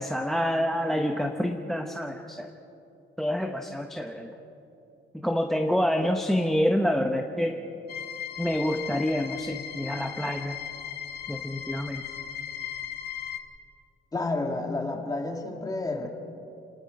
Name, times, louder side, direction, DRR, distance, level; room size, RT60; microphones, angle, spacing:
voice 1, 0.0-2.5 3.2-4.3 5.2-7.5 8.4-10.6 11.3-12.0, equal, ahead, 5 dB, 0.8 m, -27 dB
sound 1, 7.9-13.4, left 9 dB, 50° left, 2.0 m, -37 dB
voice 2, 14.1-16.1, left 2 dB, 15° left, 2 dB, 2.2 m, -30 dB
29.5 x 19.5 x 5.2 m, 2.8 s
cardioid pair, 155°, 21 cm